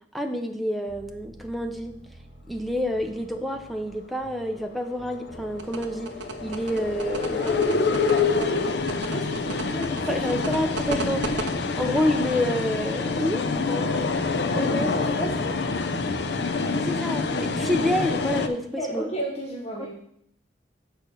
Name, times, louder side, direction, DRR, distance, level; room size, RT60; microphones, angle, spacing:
voice 1, 0.1-2.0 2.5-6.1 6.4-7.5 10.1-11.3 11.7-14.1 14.5-15.0 16.7-19.0, left 1 dB, ahead, 4 dB, 0.6 m, -28 dB
sound 1, 0.9-18.5, right 1 dB, 40° right, 0.9 m, -44 dB
sound 2, 4.4-18.5, left 4 dB, 65° left, 0.6 m, -27 dB
sound 3, 5.6-11.5, right 3 dB, 75° right, 0.8 m, -33 dB
voice 2, 7.1-8.7 9.0-10.2 14.5-15.6 18.8-19.9, right 1 dB, 35° left, -3 dB, 1.0 m, -33 dB
6.5 x 4.7 x 6.6 m, 0.72 s
head